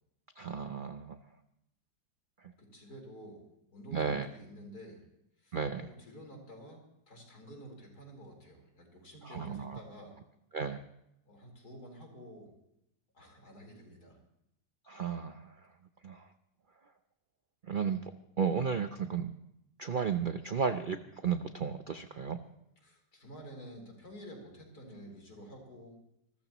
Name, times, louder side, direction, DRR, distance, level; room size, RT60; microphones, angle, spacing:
voice 1, 0.4-1.2 3.9-4.3 5.5-5.9 9.2-9.8 10.5-10.8 14.9-15.5 16.0-16.3 17.7-18.1 18.4-19.3 19.8-22.4, right 6 dB, 55° right, 8 dB, 0.5 m, -33 dB
voice 2, 2.6-3.4 3.7-5.0 5.4-10.2 11.2-12.5 13.1-14.2 22.8-26.0, equal, 65° left, 1 dB, 4.6 m, -50 dB
27.0 x 14.0 x 3.0 m, 0.81 s
omnidirectional pair, 1.8 m